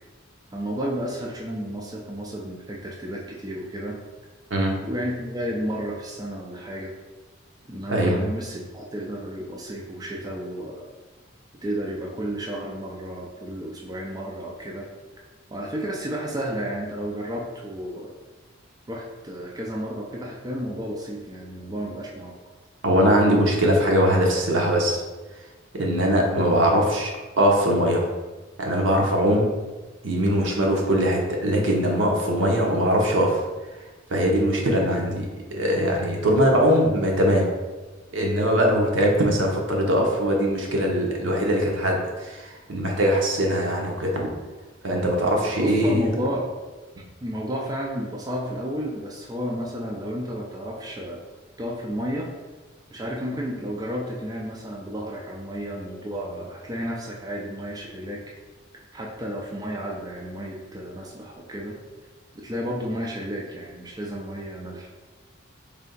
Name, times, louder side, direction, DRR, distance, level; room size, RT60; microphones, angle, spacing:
voice 1, 0.5-4.0 4.8-7.0 7.7-10.9 11.6-14.9 15.5-18.2 18.9-22.3 45.6-46.5 47.2-51.2 51.6-52.3 52.9-58.3 58.9-61.8 62.3-64.9, equal, 20° right, -2 dB, 0.4 m, -32 dB
voice 2, 7.9-8.3 22.8-25.0 25.7-28.1 28.6-29.5 30.0-33.4 34.1-37.5 38.1-44.3 44.8-46.1, equal, 70° right, 0 dB, 0.7 m, -21 dB
3.3 x 2.7 x 3.8 m, 1.3 s
head